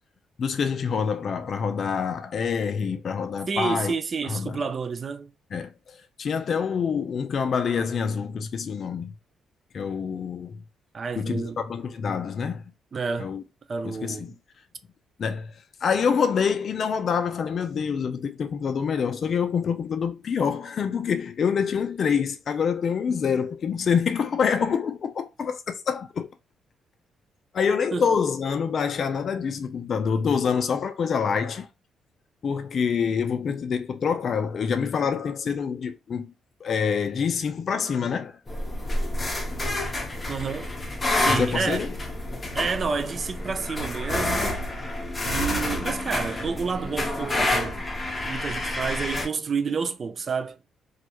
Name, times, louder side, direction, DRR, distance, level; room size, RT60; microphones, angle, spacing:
voice 1, 0.4-3.9 4.2-4.6 5.5-9.1 9.7-10.6 11.2-12.6 13.2-13.4 13.8-14.3 15.2-26.3 27.5-31.7 32.4-36.3 36.6-38.4 41.3-41.9, left 6 dB, 50° left, 0.3 m, -26 dB
voice 2, 3.5-5.3 10.9-11.6 12.9-13.3 13.7-14.3 27.9-28.0 40.3-40.7 41.1-41.9 42.5-44.6 45.2-47.8 48.2-50.6, right 5 dB, 40° right, 0.3 m, -29 dB
sound 1, 38.5-49.3, left 1 dB, 25° left, 0.7 m, -28 dB
2.3 x 2.0 x 2.8 m
cardioid pair, 90°, 0 cm